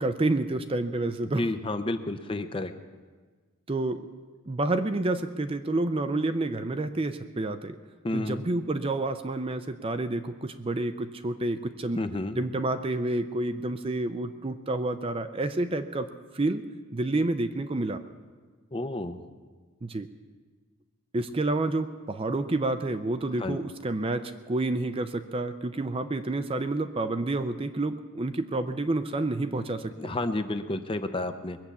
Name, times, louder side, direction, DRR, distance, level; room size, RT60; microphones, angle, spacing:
voice 1, 0.0-1.4 3.7-4.0 4.4-7.8 8.1-12.0 12.4-16.1 16.3-16.6 16.9-18.0 19.8-20.1 21.1-30.1, right 2 dB, 25° right, 10 dB, 0.5 m, -29 dB
voice 2, 1.4-2.7 8.0-8.4 11.9-12.4 18.7-19.2 23.4-23.6 30.0-31.6, left 2 dB, 25° left, 9 dB, 0.6 m, -31 dB
21.0 x 7.2 x 8.2 m, 1.4 s
head